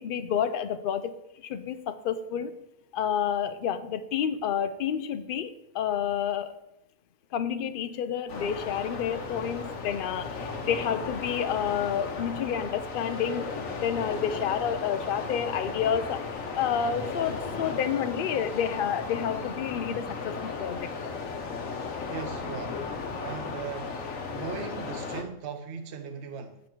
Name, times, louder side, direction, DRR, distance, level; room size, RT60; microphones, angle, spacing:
voice 1, 0.0-2.5 2.9-6.6 7.3-13.5 13.8-16.2 16.5-21.1, left 8 dB, 55° left, 11 dB, 0.7 m, -29 dB
sound 1, 8.3-25.2, left 4 dB, 90° left, 1.3 m, -35 dB
voice 2, 22.1-22.8 23.2-24.0 24.3-26.6, right 6 dB, 60° right, 6 dB, 0.9 m, -38 dB
8.2 x 5.3 x 4.5 m, 0.85 s
omnidirectional pair, 1.3 m